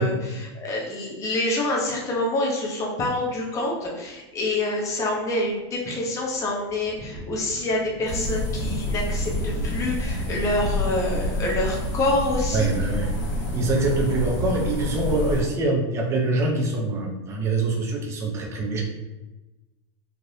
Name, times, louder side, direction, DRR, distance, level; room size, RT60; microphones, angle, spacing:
voice 1, 0.0-12.7, left 2 dB, 20° left, -2 dB, 0.6 m, -27 dB
Thunder, 4.0-4.1 4.6-15.1, equal, 45° right, 1.1 m, -43 dB
sound 1, 8.1-15.4, left 1 dB, 65° left, 1.5 m, -28 dB
voice 2, 12.5-13.1 13.5-18.8, right 2 dB, 20° right, 0 dB, 0.5 m, -24 dB
3.3 x 2.5 x 2.7 m, 1.1 s
supercardioid pair, 155°, 15 cm